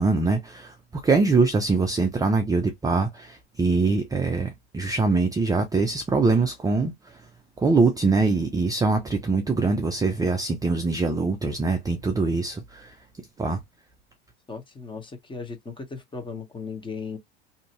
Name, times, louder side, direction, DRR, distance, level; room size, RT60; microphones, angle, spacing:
voice 1, 0.0-6.9 7.6-12.9 13.4-13.6, right 3 dB, 10° right, 0.5 m, -23 dB
voice 2, 14.5-17.2, left 5 dB, 15° left, 1.0 m, -36 dB
2.7 x 2.5 x 2.9 m
hypercardioid pair, 90°, 33 cm